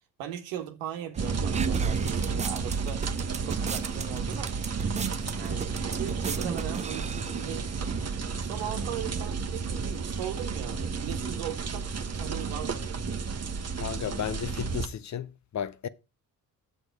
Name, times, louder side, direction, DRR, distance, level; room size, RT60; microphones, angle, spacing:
voice 1, 0.2-3.0 3.4-4.6 5.4-5.7 6.0-7.7 8.4-13.5, right 10 dB, 70° right, 1.5 m, -39 dB
sound 1, 1.1-8.0, right 5 dB, 15° right, 0.4 m, -39 dB
sound 2, 1.2-14.9, right 5 dB, 30° right, 1.2 m, -31 dB
voice 2, 13.8-15.9, left 9 dB, 35° left, 0.7 m, -34 dB
8.0 x 6.5 x 4.6 m
figure-of-eight pair, 45°, 49 cm